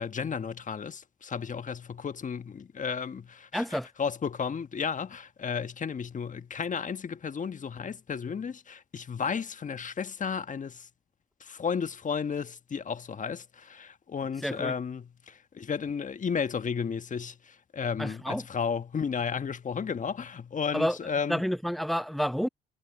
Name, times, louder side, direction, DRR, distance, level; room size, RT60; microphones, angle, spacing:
voice 1, 0.0-10.9 11.4-21.4, left 6 dB, 40° left, 1.5 m, -33 dB
voice 2, 3.5-3.9 14.4-14.7 18.0-18.4 20.7-21.0 21.3-22.5, equal, ahead, 0.7 m, -29 dB
hypercardioid pair, 55°, 20 cm